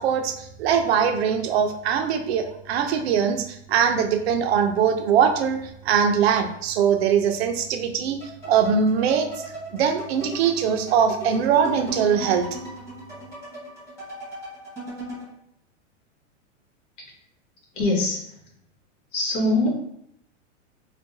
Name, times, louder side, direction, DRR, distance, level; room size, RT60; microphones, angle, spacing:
voice 1, 0.0-9.3 9.7-12.5, right 7 dB, 55° right, 6 dB, 0.5 m, -22 dB
sound 1, 8.2-15.3, right 1 dB, 5° left, 1.2 m, -37 dB
voice 2, 17.7-18.4 19.1-19.8, left 2 dB, 70° left, -1 dB, 1.3 m, -23 dB
4.6 x 2.2 x 2.6 m, 0.75 s
supercardioid pair, 155°, 38 cm